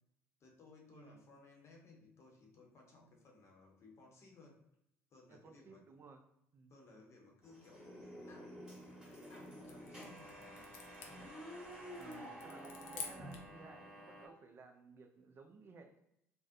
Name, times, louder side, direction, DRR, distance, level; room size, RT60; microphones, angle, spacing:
voice 1, 0.4-4.6 5.1-5.8 6.7-7.9 8.3-8.7 9.3-10.7, left 3 dB, 35° left, -1 dB, 0.7 m, -61 dB
voice 2, 0.9-1.3 5.3-6.2 6.5-6.7 11.9-16.0, right 4 dB, 30° right, 6 dB, 0.4 m, -57 dB
sound 1, 7.4-14.3, equal, 10° right, 1.1 m, -50 dB
sound 2, 8.9-13.6, left 6 dB, 65° left, 0.4 m, -52 dB
2.5 x 2.0 x 2.4 m, 0.78 s
figure-of-eight pair, 60°, 8 cm